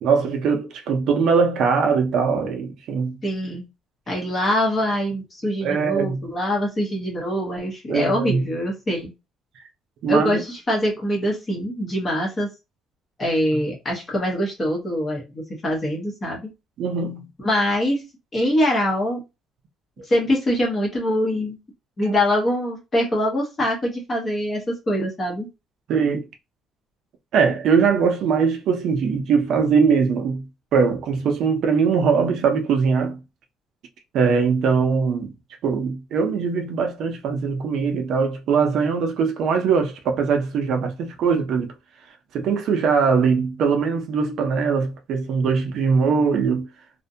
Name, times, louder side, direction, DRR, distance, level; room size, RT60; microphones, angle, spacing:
voice 1, 0.0-3.2 5.6-6.2 7.9-8.4 10.0-10.4 16.8-17.3 20.0-20.1 22.1-22.2 25.9-26.2 27.3-30.5 30.7-33.2 34.1-35.3 35.6-41.7 42.3-46.7, right 5 dB, 50° right, 0.5 m, -21 dB
voice 2, 3.2-3.6 4.1-9.1 10.1-12.5 13.2-16.4 17.4-18.1 18.3-19.2 20.1-21.6 22.0-25.5, equal, 25° left, 0.7 m, -23 dB
2.5 x 2.1 x 2.6 m
cardioid pair, 175°, 0 cm